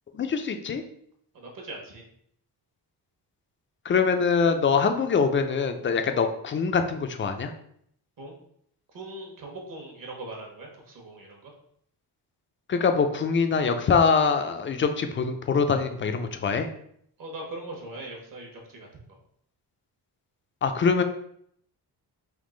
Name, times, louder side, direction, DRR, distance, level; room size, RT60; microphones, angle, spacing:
voice 1, 0.1-0.8 3.8-7.5 12.7-16.7 20.6-21.0, left 5 dB, 30° left, 7 dB, 0.4 m, -24 dB
voice 2, 1.3-2.0 8.2-8.3 8.9-11.5 17.2-19.2, right 2 dB, 50° right, 1 dB, 1.2 m, -40 dB
3.7 x 2.8 x 3.8 m, 0.69 s
cardioid pair, 130°, 42 cm